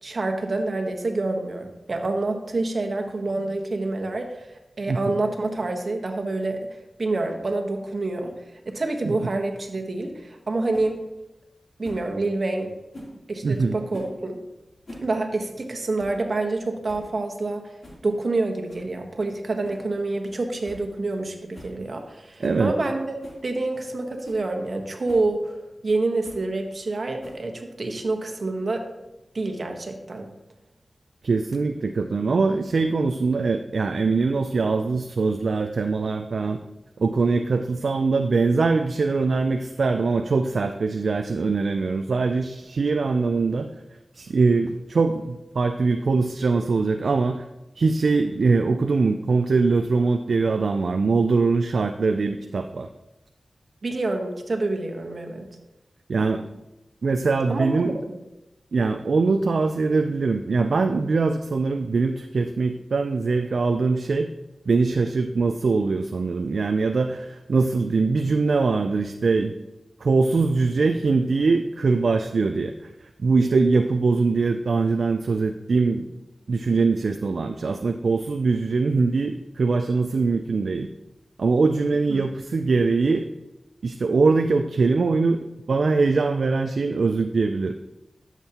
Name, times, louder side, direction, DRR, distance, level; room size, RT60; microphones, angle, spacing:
voice 1, 0.0-4.5 4.8-6.6 7.0-8.3 8.6-11.0 11.8-12.7 13.3-14.4 15.0-17.7 18.0-23.2 23.4-28.8 29.3-30.3 53.8-55.5 57.5-58.1 82.1-82.2, right 2 dB, 60° right, 4 dB, 1.3 m, -27 dB
sound 1, 10.7-10.9 11.8-12.1 12.9-13.2 13.9-14.2 14.7-15.1 15.4-15.5 16.0-16.2 16.6-16.7 16.9-17.1 17.8-18.0 18.7-18.9 19.6-19.9 20.2-20.3 20.6-20.8 21.1-21.2 21.5-21.8 22.4-22.6 23.2-23.4 23.9-24.0 24.2-24.4 25.1-25.3 26.2-26.5 27.2-27.6, left 1 dB, 55° left, 3.2 m, -42 dB
voice 2, 13.4-13.7 22.4-22.7 31.2-36.6 37.0-43.7 44.1-47.4 47.8-52.9 56.1-56.5 57.0-58.0 58.7-64.3 64.7-69.5 70.0-76.1 76.5-80.9 81.4-83.3 83.8-87.7, right 4 dB, 80° right, 7 dB, 0.4 m, -22 dB
12.5 x 7.3 x 3.0 m, 0.97 s
wide cardioid pair, 65°, 0 cm